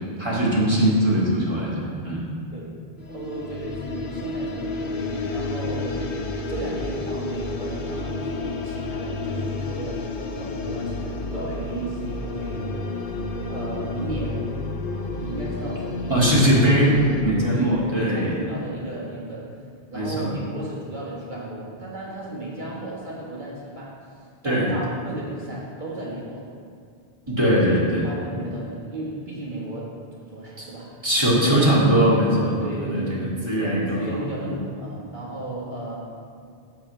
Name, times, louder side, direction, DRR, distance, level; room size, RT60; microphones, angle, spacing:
voice 1, 0.2-2.2 16.1-17.0 17.2-18.4 19.9-20.3 24.4-24.7 27.3-28.1 30.6-30.7 31.0-34.5, equal, 25° right, -7 dB, 2.4 m, -21 dB
sound 1, 3.0-17.2, left 3 dB, 60° left, 0.9 m, -30 dB
voice 2, 3.0-12.7 13.5-14.6 15.1-16.4 17.5-19.7 19.9-24.0 24.4-26.5 28.0-30.9 31.3-31.6 32.6-33.3 33.6-36.0, right 1 dB, 50° right, -6 dB, 1.6 m, -34 dB
11.0 x 7.5 x 3.2 m, 2.3 s
omnidirectional pair, 1.0 m